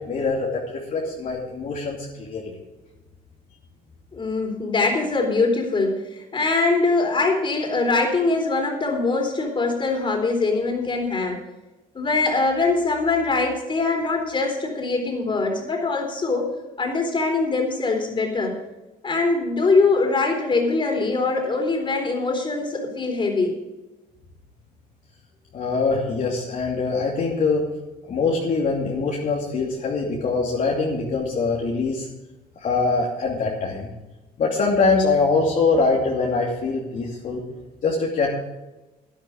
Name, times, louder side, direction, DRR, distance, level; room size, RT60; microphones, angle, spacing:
voice 1, 0.1-2.5 25.5-27.7 28.1-32.1 32.6-33.9 34.4-37.4 37.8-38.3, left 4 dB, 50° left, -3 dB, 2.7 m, -23 dB
voice 2, 4.1-11.4 11.9-16.5 16.8-18.6 19.0-23.5, left 3 dB, 30° left, 2 dB, 3.9 m, -22 dB
12.0 x 11.0 x 5.1 m, 1.0 s
cardioid pair, 110°, 17 cm